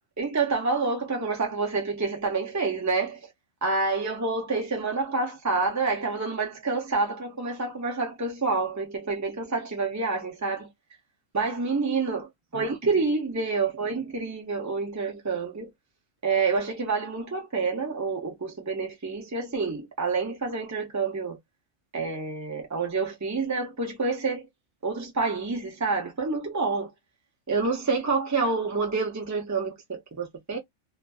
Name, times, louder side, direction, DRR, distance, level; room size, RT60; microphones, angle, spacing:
voice 1, 0.2-3.3 3.6-10.7 11.3-12.3 12.5-15.7 16.2-21.4 21.9-24.5 24.8-26.9 27.5-30.6, right 4 dB, 30° right, 0.3 m, -28 dB
2.5 x 2.4 x 2.3 m
omnidirectional pair, 1.3 m